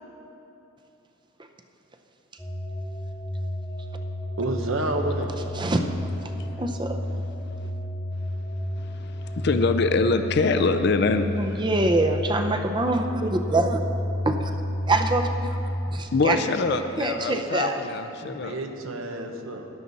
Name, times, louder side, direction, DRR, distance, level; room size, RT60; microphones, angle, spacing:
sound 1, 2.4-16.0, equal, 5° left, 1.0 m, -31 dB
voice 1, 4.4-5.4 18.2-19.7, right 2 dB, 85° right, 4 dB, 1.0 m, -30 dB
voice 2, 5.5-5.9 6.2-6.3 6.6-7.2 11.4-13.8 14.3-14.5 14.9-15.6 15.9-16.4 17.0-17.8, right 2 dB, 25° right, 5 dB, 0.6 m, -25 dB
voice 3, 6.3-6.6 8.8-11.6 16.1-18.5, left 3 dB, 55° left, 8 dB, 0.5 m, -25 dB
13.5 x 10.5 x 4.1 m, 2.9 s
head